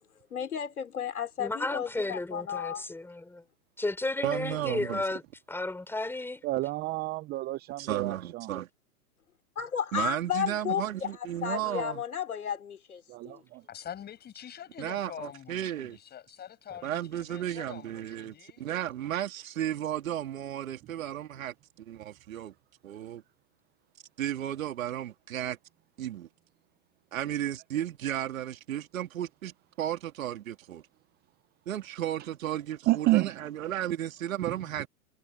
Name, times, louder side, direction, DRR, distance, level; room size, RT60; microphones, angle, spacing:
voice 1, 0.3-2.9 9.6-11.1 11.4-13.4, left 8 dB, 85° left, 3.6 m, -33 dB
voice 2, 1.4-3.4 3.8-5.2 5.5-6.4, left 2 dB, 5° left, 4.3 m, -33 dB
voice 3, 4.2-5.1 7.8-8.7 9.9-12.0 14.8-16.0 16.8-22.5 22.8-23.2 24.2-25.6 26.0-26.3 27.1-30.8 31.7-34.9, right 11 dB, 70° right, 3.6 m, -34 dB
voice 4, 6.4-8.5 13.1-13.6 32.9-33.4 34.5-34.6, right 17 dB, 25° right, 0.7 m, -29 dB
voice 5, 13.7-18.7, left 10 dB, 25° left, 6.8 m, -45 dB
hypercardioid pair, 120°, 43 cm